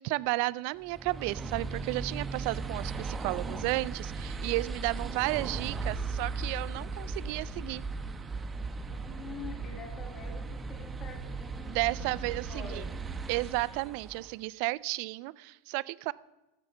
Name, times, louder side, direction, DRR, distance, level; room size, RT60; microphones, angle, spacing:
voice 1, 0.0-7.8 11.7-12.8 13.3-16.1, right 22 dB, 55° right, 19 dB, 0.3 m, -33 dB
sound 1, 0.8-14.3, right 4 dB, 20° right, 0.7 m, -37 dB
voice 2, 8.9-12.2 12.5-13.0, left 5 dB, 35° left, 4 dB, 2.1 m, -46 dB
12.0 x 7.1 x 6.5 m, 1.0 s
hypercardioid pair, 90°, 0 cm